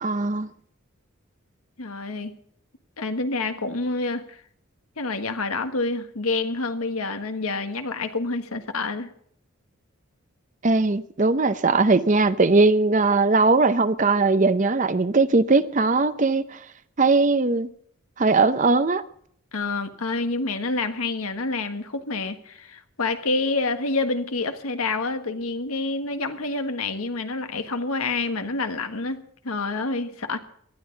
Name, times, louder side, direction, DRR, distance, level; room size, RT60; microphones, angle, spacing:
voice 1, 0.0-0.5 10.6-16.6 17.0-17.7 18.2-19.0, right 3 dB, 35° right, 0.6 m, -20 dB
voice 2, 1.8-2.4 3.0-4.4 5.0-9.1 19.5-30.4, left 3 dB, 85° left, 1.6 m, -28 dB
19.0 x 13.0 x 4.0 m
head